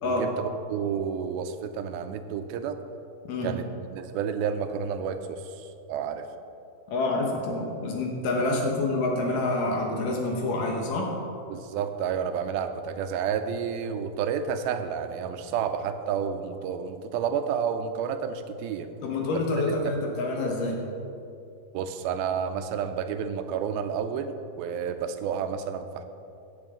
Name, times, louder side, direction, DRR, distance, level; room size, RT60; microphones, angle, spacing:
voice 1, 0.0-2.8 3.4-6.3 8.4-8.7 11.5-18.9 19.5-19.9 21.7-26.0, right 7 dB, 80° right, 8 dB, 2.4 m, -30 dB
voice 2, 6.9-11.1 19.0-20.8, left 2 dB, 70° left, 0 dB, 2.6 m, -27 dB
15.5 x 8.4 x 3.7 m, 2.6 s
omnidirectional pair, 4.4 m